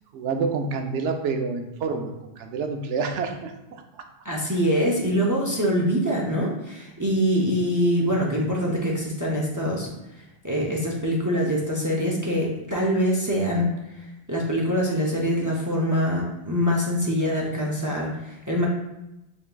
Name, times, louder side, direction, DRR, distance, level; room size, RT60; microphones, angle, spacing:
voice 1, 0.1-3.5, right 4 dB, 80° right, 5 dB, 0.9 m, -28 dB
voice 2, 4.2-9.9 10.2-13.7 13.9-18.7, equal, 30° right, -3 dB, 0.3 m, -24 dB
5.1 x 3.4 x 2.2 m, 0.94 s
omnidirectional pair, 1.2 m